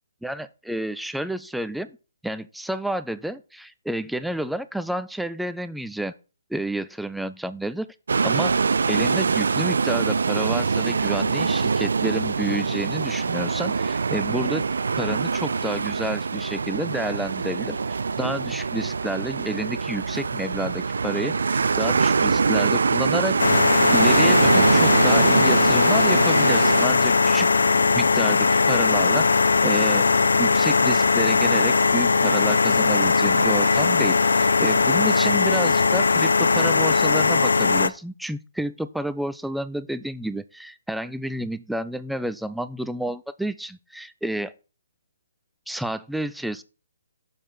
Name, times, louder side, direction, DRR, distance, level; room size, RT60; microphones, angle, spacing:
voice 1, 0.2-2.0 2.2-6.1 6.5-7.9 8.2-8.6 8.9-14.7 15.0-23.4 23.9-27.5 27.9-29.3 29.6-30.1 30.4-44.5 45.7-46.6, right 1 dB, ahead, 13 dB, 0.4 m, -30 dB
sound 1, 8.1-26.9, right 5 dB, 65° right, 0.3 m, -23 dB
sound 2, 23.4-37.9, left 4 dB, 70° left, 0.5 m, -19 dB
6.9 x 4.9 x 5.9 m, 0.32 s
figure-of-eight pair, 130°, 0 cm